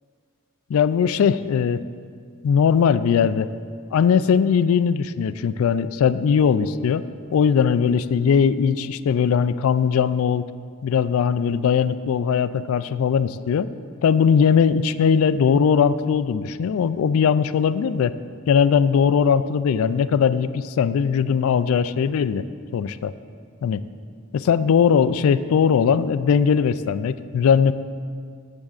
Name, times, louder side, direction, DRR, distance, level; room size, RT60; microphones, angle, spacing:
voice 1, 0.7-1.8 2.4-3.5 3.9-7.0 7.3-10.5 10.8-13.7 14.0-18.1 18.5-22.5 22.7-23.1 23.6-23.8 24.3-27.7, left 7 dB, 65° left, 15 dB, 0.3 m, -19 dB
14.0 x 7.6 x 2.4 m, 2.1 s
head